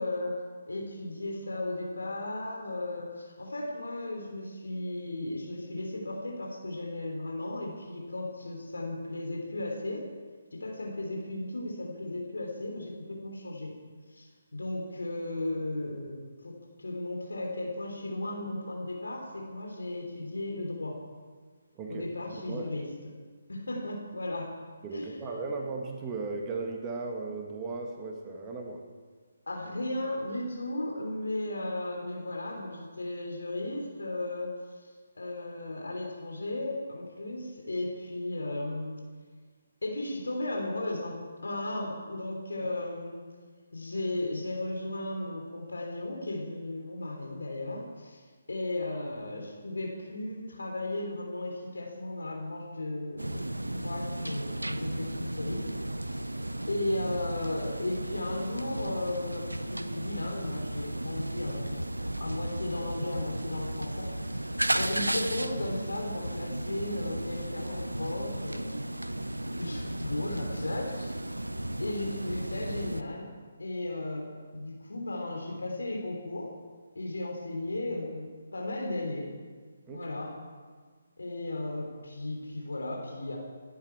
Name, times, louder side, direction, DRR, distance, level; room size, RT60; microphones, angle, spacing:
voice 1, 0.0-10.1 10.5-13.8 14.1-21.0 21.9-22.9 23.5-24.5 24.9-25.3 29.5-34.6 34.8-39.0 39.8-43.3 43.7-48.2 48.5-55.6 56.0-56.3 56.7-61.9 62.2-68.7 69.5-71.2 71.8-73.3 73.6-76.6 76.9-79.3 79.9-80.3 81.2-83.4, left 2 dB, 70° left, 1 dB, 3.4 m, -35 dB
voice 2, 21.7-22.1 22.5-22.7 24.8-28.9 56.3-56.7 79.9-80.1, right 3 dB, 20° right, 2 dB, 1.7 m, -37 dB
sound 1, 53.2-73.0, right 1 dB, 85° right, 0.8 m, -34 dB
26.0 x 11.0 x 4.7 m, 1.5 s
figure-of-eight pair, 145°, 0 cm